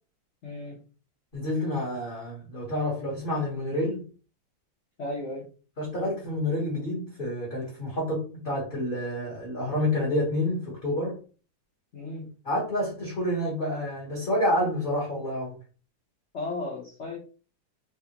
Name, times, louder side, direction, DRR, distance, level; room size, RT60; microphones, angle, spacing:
voice 1, 0.4-0.8 5.0-5.5 11.9-12.3 16.3-17.2, left 2 dB, 65° left, 0.7 m, -34 dB
voice 2, 1.3-4.0 5.8-11.2 12.4-15.5, left 1 dB, 35° left, 0.9 m, -28 dB
3.4 x 2.4 x 2.8 m
omnidirectional pair, 2.2 m